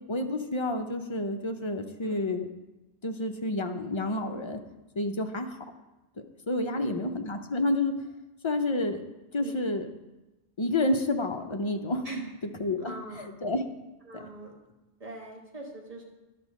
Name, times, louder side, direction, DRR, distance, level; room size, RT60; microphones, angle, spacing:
voice 1, 0.1-2.5 3.0-4.6 5.0-5.6 6.5-7.9 8.4-9.0 9.3-9.9 10.6-12.1 12.6-13.7 14.1-14.2, left 2 dB, 35° left, 6 dB, 0.5 m, -29 dB
voice 2, 6.6-7.2 9.4-9.5 12.0-12.3 12.8-13.4 14.0-14.5 15.0-16.0, right 2 dB, 35° right, -1 dB, 1.5 m, -41 dB
10.5 x 4.2 x 6.2 m, 1.0 s
omnidirectional pair, 1.1 m